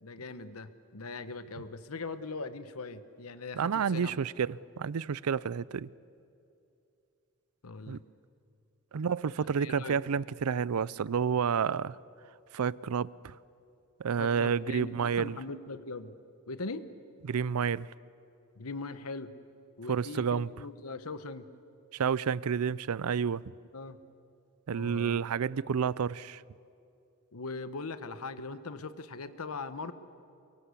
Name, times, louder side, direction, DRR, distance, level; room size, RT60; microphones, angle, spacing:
voice 1, 0.0-4.1 7.6-8.0 9.4-10.0 14.2-16.1 16.5-16.9 18.6-19.3 19.8-21.5 23.7-24.0 24.7-25.2 27.3-29.9, left 3 dB, 80° left, 1.1 m, -40 dB
voice 2, 3.6-5.9 7.9-8.0 8.9-12.0 12.5-13.4 14.0-15.4 17.2-17.9 19.9-20.5 21.9-23.4 24.7-26.4, right 6 dB, 90° right, 0.5 m, -30 dB
23.5 x 22.5 x 8.4 m
head